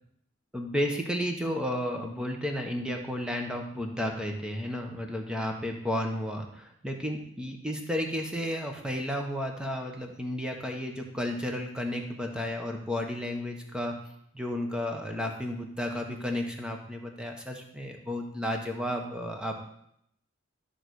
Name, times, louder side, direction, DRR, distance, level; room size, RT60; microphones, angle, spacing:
voice 1, 0.5-13.9 14.3-19.6, left 1 dB, 5° right, 2 dB, 1.2 m, -32 dB
12.0 x 4.1 x 6.4 m, 0.73 s
head